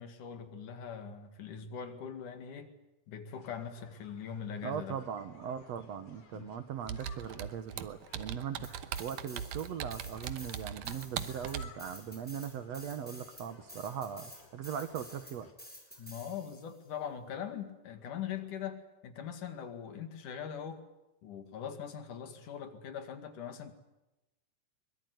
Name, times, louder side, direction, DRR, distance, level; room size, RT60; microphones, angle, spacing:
voice 1, 0.0-2.8 3.1-5.0 6.3-6.5 8.6-8.7 16.0-20.8 21.2-23.7, left 8 dB, 75° left, 7 dB, 3.5 m, -42 dB
sound 1, 3.3-15.5, left 5 dB, 50° left, 3.7 m, -59 dB
voice 2, 4.6-15.5, right 8 dB, 60° right, 11 dB, 2.2 m, -40 dB
Computer keyboard, 6.9-11.8, right 9 dB, 80° right, 2.5 m, -40 dB
sound 2, 8.6-9.7 9.9-16.7, equal, 5° left, 6.4 m, -50 dB
23.0 x 22.0 x 9.5 m, 1.0 s
omnidirectional pair, 3.6 m